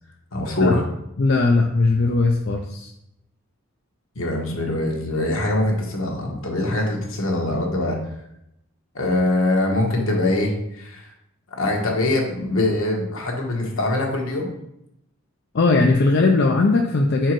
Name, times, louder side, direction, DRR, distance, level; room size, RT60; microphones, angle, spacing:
voice 1, 0.3-0.8 4.1-8.0 8.9-11.1 11.5-14.5, left 2 dB, 75° left, 0 dB, 1.3 m, -23 dB
voice 2, 1.2-2.9 15.5-17.3, left 3 dB, 50° left, 2 dB, 0.5 m, -18 dB
4.8 x 4.6 x 4.6 m, 0.81 s
head